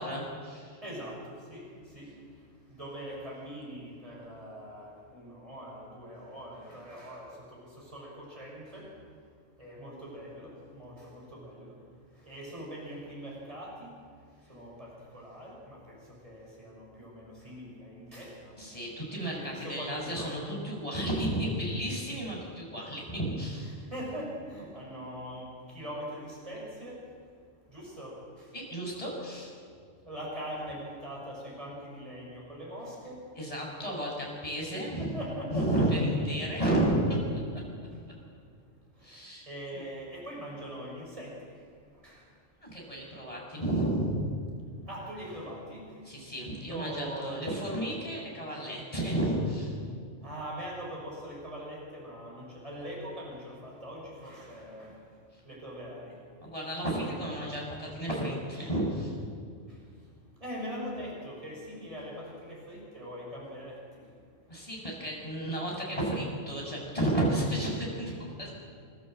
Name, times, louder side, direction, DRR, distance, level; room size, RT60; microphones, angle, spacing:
voice 1, 0.0-0.8 18.6-23.7 28.5-29.5 33.4-35.1 35.5-37.4 39.0-39.5 39.7-39.8 42.6-44.3 46.1-49.7 56.4-59.1 64.5-68.1 68.4-68.5, right 1 dB, 25° left, -2 dB, 6.2 m, -32 dB
voice 2, 0.8-1.7 1.9-2.1 2.7-7.3 7.8-8.9 9.6-11.7 12.2-13.8 14.5-16.0 16.2-18.7 19.2-20.3 23.6-27.0 27.7-28.2 30.1-33.2 35.0-36.2 39.5-41.3 42.0-42.2 44.9-45.9 46.6-47.6 50.2-54.9 55.5-56.1 60.4-63.8 68.3-68.4, equal, 25° right, -3 dB, 6.2 m, -42 dB
29.5 x 12.5 x 7.6 m, 2.2 s
omnidirectional pair, 1.3 m